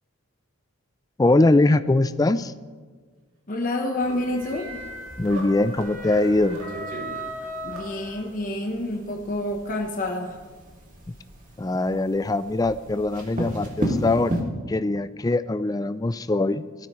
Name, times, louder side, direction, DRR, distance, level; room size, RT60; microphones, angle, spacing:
voice 1, 1.2-2.5 5.2-6.6 11.6-14.4 14.7-16.9, left 2 dB, 15° left, 14 dB, 0.3 m, -22 dB
voice 2, 3.5-4.7 7.6-10.4, left 1 dB, 40° left, 1 dB, 1.0 m, -28 dB
sound 1, 3.7-8.6, right 1 dB, 75° right, 2.5 m, -37 dB
sound 2, 4.0-14.4, equal, 40° right, 2.4 m, -35 dB
19.0 x 13.0 x 3.1 m, 1.5 s
head